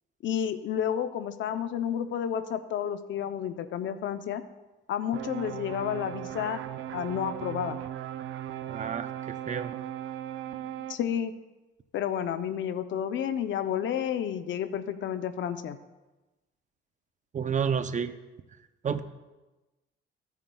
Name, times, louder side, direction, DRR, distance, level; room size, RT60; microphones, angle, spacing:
voice 1, 0.2-4.4 4.9-6.6 6.9-7.8 10.9-11.3 11.9-15.8, left 9 dB, 70° left, 10 dB, 0.7 m, -31 dB
sound 1, 5.1-11.0, right 11 dB, 85° right, 0.5 m, -37 dB
voice 2, 8.7-9.1 9.5-9.7 17.3-18.1 18.8-19.0, right 7 dB, 40° right, 10 dB, 0.6 m, -29 dB
15.5 x 9.2 x 2.3 m, 1.1 s
cardioid pair, 90°, 20 cm